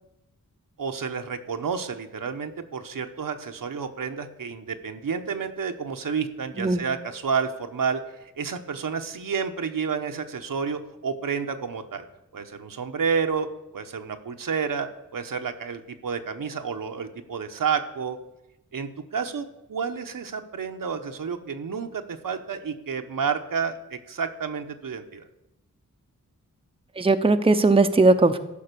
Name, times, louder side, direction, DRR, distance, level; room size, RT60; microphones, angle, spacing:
voice 1, 0.8-12.1 12.3-13.5 13.7-18.2 18.7-25.2, right 6 dB, 75° right, 6 dB, 1.0 m, -30 dB
voice 2, 27.0-28.4, right 3 dB, 15° right, 8 dB, 0.7 m, -19 dB
13.5 x 5.3 x 6.8 m, 0.91 s
wide cardioid pair, 65°, 33 cm